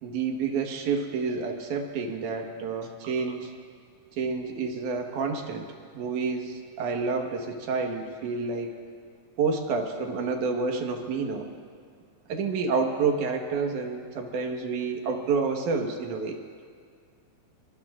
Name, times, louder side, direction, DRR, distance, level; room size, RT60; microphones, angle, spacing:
voice 1, 0.0-3.5 4.1-5.7 5.9-8.7 9.4-11.5 12.3-16.4, right 4 dB, 85° right, 3 dB, 2.9 m, -29 dB
24.5 x 23.5 x 2.5 m, 2.2 s
omnidirectional pair, 3.4 m